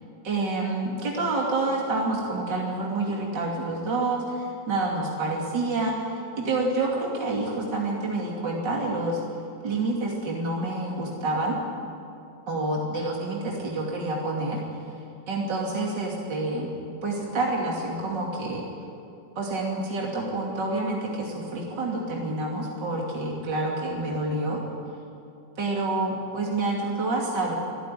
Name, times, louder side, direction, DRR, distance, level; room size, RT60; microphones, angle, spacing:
voice 1, 0.2-9.2 9.6-11.6 12.5-14.6 15.3-16.7 17.0-18.7 19.4-24.6 25.6-27.5, right 2 dB, 65° right, -2 dB, 3.4 m, -28 dB
24.5 x 15.0 x 9.9 m, 2.7 s
omnidirectional pair, 2.1 m